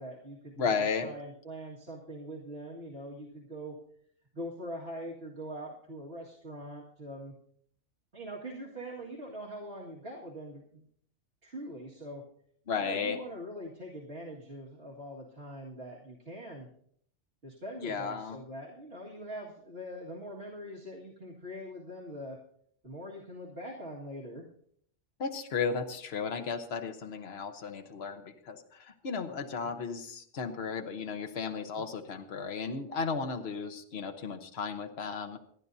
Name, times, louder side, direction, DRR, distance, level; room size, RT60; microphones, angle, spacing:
voice 1, 0.0-3.8 4.3-7.3 8.1-10.8 11.4-12.2 12.8-16.7 17.4-22.4 22.8-24.5 29.6-29.8 31.8-31.9, equal, 60° right, -5 dB, 2.3 m, -43 dB
voice 2, 0.6-1.1 12.7-13.2 17.8-18.4 25.2-35.4, left 5 dB, 60° left, 6 dB, 1.3 m, -34 dB
27.5 x 10.5 x 2.7 m, 0.63 s
omnidirectional pair, 1.2 m